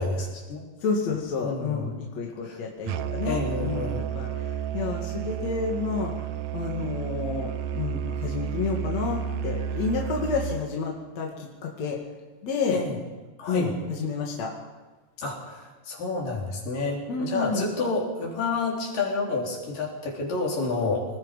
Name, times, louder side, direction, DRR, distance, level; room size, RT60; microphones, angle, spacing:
voice 1, 0.0-0.7 1.4-1.9 2.4-2.6 3.3-4.1 12.7-13.0 13.4-13.7 15.2-21.1, left 3 dB, 75° left, -2 dB, 5.6 m, -29 dB
voice 2, 0.8-6.3 6.5-12.0 12.4-12.8 13.5-14.5 17.1-17.7, left 4 dB, 55° left, -1 dB, 3.2 m, -30 dB
Musical instrument, 2.9-10.7, right 8 dB, 75° right, 1.7 m, -31 dB
25.0 x 20.0 x 5.4 m, 1.2 s
omnidirectional pair, 3.9 m